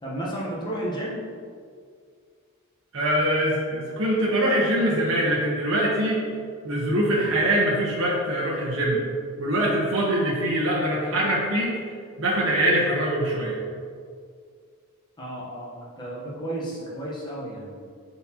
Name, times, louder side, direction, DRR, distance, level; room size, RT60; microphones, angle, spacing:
voice 1, 0.0-1.2 15.2-17.8, right 1 dB, 20° left, -6 dB, 1.1 m, -32 dB
voice 2, 2.9-6.2 6.6-9.0 9.4-11.7 12.2-13.6, right 1 dB, 60° right, -5 dB, 1.1 m, -23 dB
7.8 x 4.1 x 3.0 m, 2.1 s
head